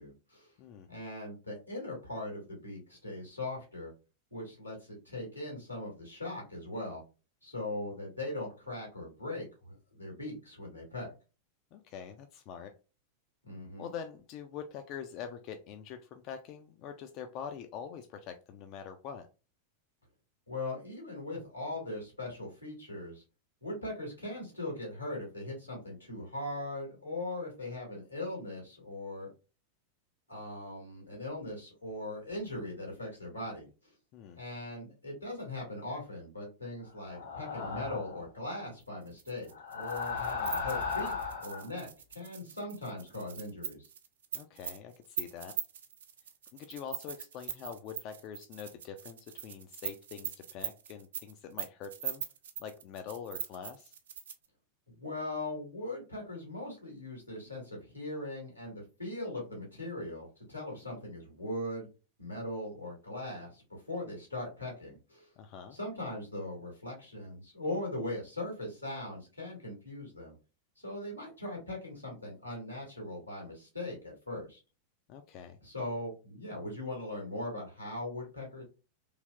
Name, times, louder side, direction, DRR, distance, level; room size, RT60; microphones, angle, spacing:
voice 1, 0.0-0.5 0.9-3.9 4.3-7.0 7.4-11.1 13.4-13.9 20.5-23.2 23.6-29.3 30.3-33.9 34.4-43.9 54.9-61.9 62.2-65.3 65.7-70.3 70.8-74.6 75.6-78.6, left 1 dB, 90° left, 0 dB, 1.6 m, -40 dB
voice 2, 11.7-12.7 13.8-19.3 34.1-34.4 44.3-45.6 46.5-52.2 52.6-54.0 65.4-65.8 75.1-75.6, left 7 dB, 40° left, 7 dB, 0.3 m, -44 dB
sound 1, 37.1-38.3 39.5-41.7, left 5 dB, 60° left, 1.2 m, -36 dB
sound 2, 39.1-54.4, right 8 dB, 65° right, 0.4 m, -41 dB
3.2 x 2.7 x 2.3 m, 0.32 s
figure-of-eight pair, 90°, 0 cm